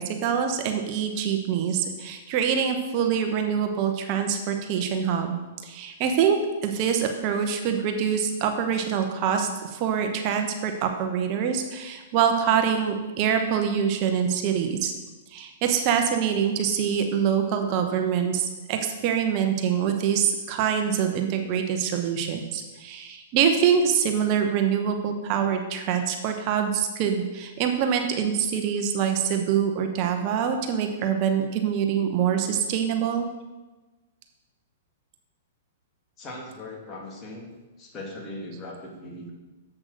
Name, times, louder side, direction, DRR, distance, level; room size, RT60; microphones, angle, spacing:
voice 1, 0.0-14.9 15.3-33.3, right 7 dB, 45° right, 5 dB, 1.0 m, -25 dB
voice 2, 36.2-37.5 37.8-39.3, left 1 dB, 25° left, -1 dB, 2.6 m, -39 dB
7.8 x 6.1 x 6.5 m, 1.2 s
hypercardioid pair, 115°, 0 cm